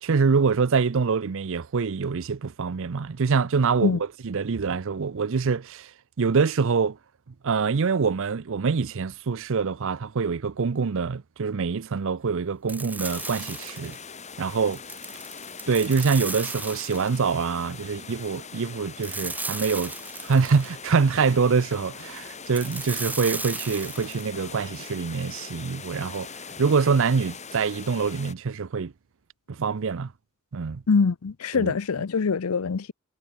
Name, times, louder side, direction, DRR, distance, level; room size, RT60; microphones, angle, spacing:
voice 1, 0.0-4.0 4.2-5.9 6.2-7.0 7.4-14.0 14.4-14.8 15.7-19.9 20.2-28.9 29.5-30.1 30.5-30.8 31.5-31.7, right 5 dB, 60° right, 0.6 m, -25 dB
sound 1, 12.7-14.0 14.7-17.3 19.0-20.7 22.5-24.3, right 3 dB, 10° right, 1.8 m, -35 dB
sound 2, 13.0-28.3, left 5 dB, 30° left, 4.5 m, -42 dB
voice 2, 30.9-32.9, left 5 dB, 80° left, 0.6 m, -24 dB
head